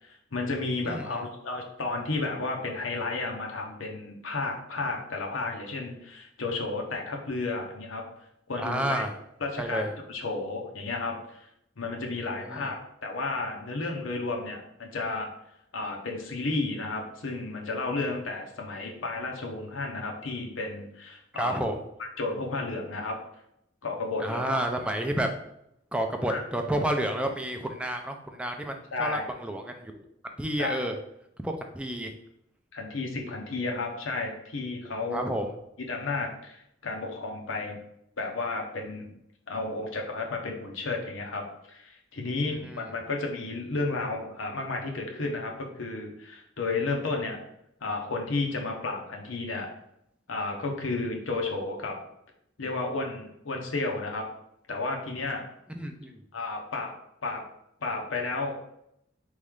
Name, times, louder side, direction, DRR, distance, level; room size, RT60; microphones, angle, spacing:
voice 1, 0.0-8.1 8.5-9.1 9.4-11.5 11.8-15.3 15.7-21.6 22.2-23.2 23.8-24.6 26.3-26.4 28.9-29.2 30.6-30.8 32.7-35.3 35.9-37.8 38.2-39.1 39.5-47.4 47.8-49.7 50.3-52.0 52.6-54.3 54.7-55.4 56.3-56.9 57.2-57.4 57.8-58.7, left 3 dB, 85° left, 1 dB, 0.9 m, -32 dB
voice 2, 0.8-1.2 8.6-9.1 9.6-9.9 12.4-12.7 21.4-21.8 24.2-25.3 25.9-30.0 30.4-31.0 31.4-32.1 35.1-35.5 42.5-42.9 55.7-56.1, right 1 dB, 5° right, 4 dB, 0.3 m, -30 dB
4.2 x 3.2 x 3.6 m, 0.78 s
head